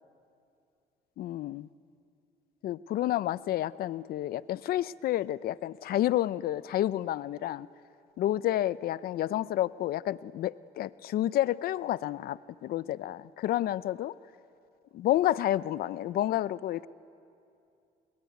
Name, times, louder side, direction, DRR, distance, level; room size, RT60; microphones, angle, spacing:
voice 1, 1.2-1.7 2.6-7.7 8.2-14.1 14.9-16.9, left 13 dB, 65° left, 18 dB, 0.6 m, -30 dB
28.0 x 21.0 x 9.4 m, 2.6 s
cardioid pair, 110°, 17 cm